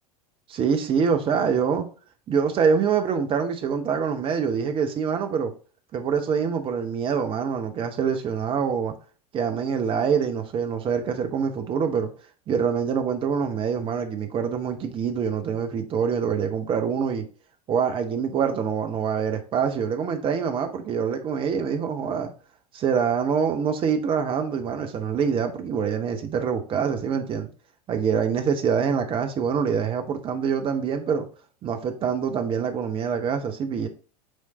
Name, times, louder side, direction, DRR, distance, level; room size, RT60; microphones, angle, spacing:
voice 1, 0.5-1.9 2.3-5.5 5.9-8.9 9.3-12.1 12.5-17.2 17.7-22.3 22.7-27.5 27.9-31.3 31.6-33.9, right 6 dB, 25° right, 0.9 m, -25 dB
6.4 x 3.6 x 4.2 m
figure-of-eight pair, 85°, 20 cm